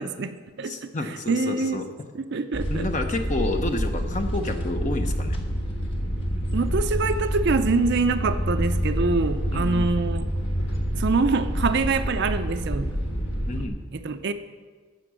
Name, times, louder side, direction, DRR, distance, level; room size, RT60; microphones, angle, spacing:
voice 1, 0.0-0.9 1.3-1.8 2.1-2.9 6.5-10.3 10.9-12.9 13.9-14.3, right 4 dB, 50° right, 10 dB, 0.5 m, -25 dB
voice 2, 0.6-1.8 2.7-5.4 9.5-9.9 13.5-13.9, left 2 dB, 35° left, 5 dB, 0.9 m, -29 dB
sound 1, 2.5-13.7, equal, 55° left, 1.6 m, -27 dB
15.5 x 6.0 x 6.3 m, 1.5 s
head